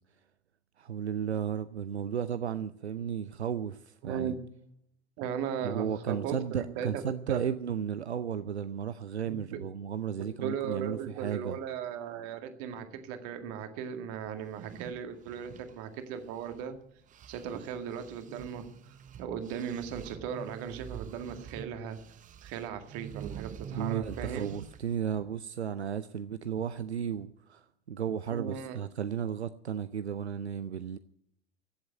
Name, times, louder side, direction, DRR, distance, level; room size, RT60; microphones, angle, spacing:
voice 1, 0.8-4.3 5.6-11.6 23.7-31.0, right 8 dB, 80° right, 14 dB, 0.6 m, -34 dB
voice 2, 4.0-4.3 5.2-7.0 7.3-7.4 9.3-9.6 10.4-16.8 17.3-18.7 19.2-22.0 22.4-24.5 28.3-28.8, right 8 dB, 50° right, 7 dB, 2.1 m, -37 dB
sound 1, 14.4-16.8 17.1-25.0, right 8 dB, 25° right, 0.8 m, -46 dB
15.5 x 7.7 x 9.2 m, 0.74 s
figure-of-eight pair, 80°, 32 cm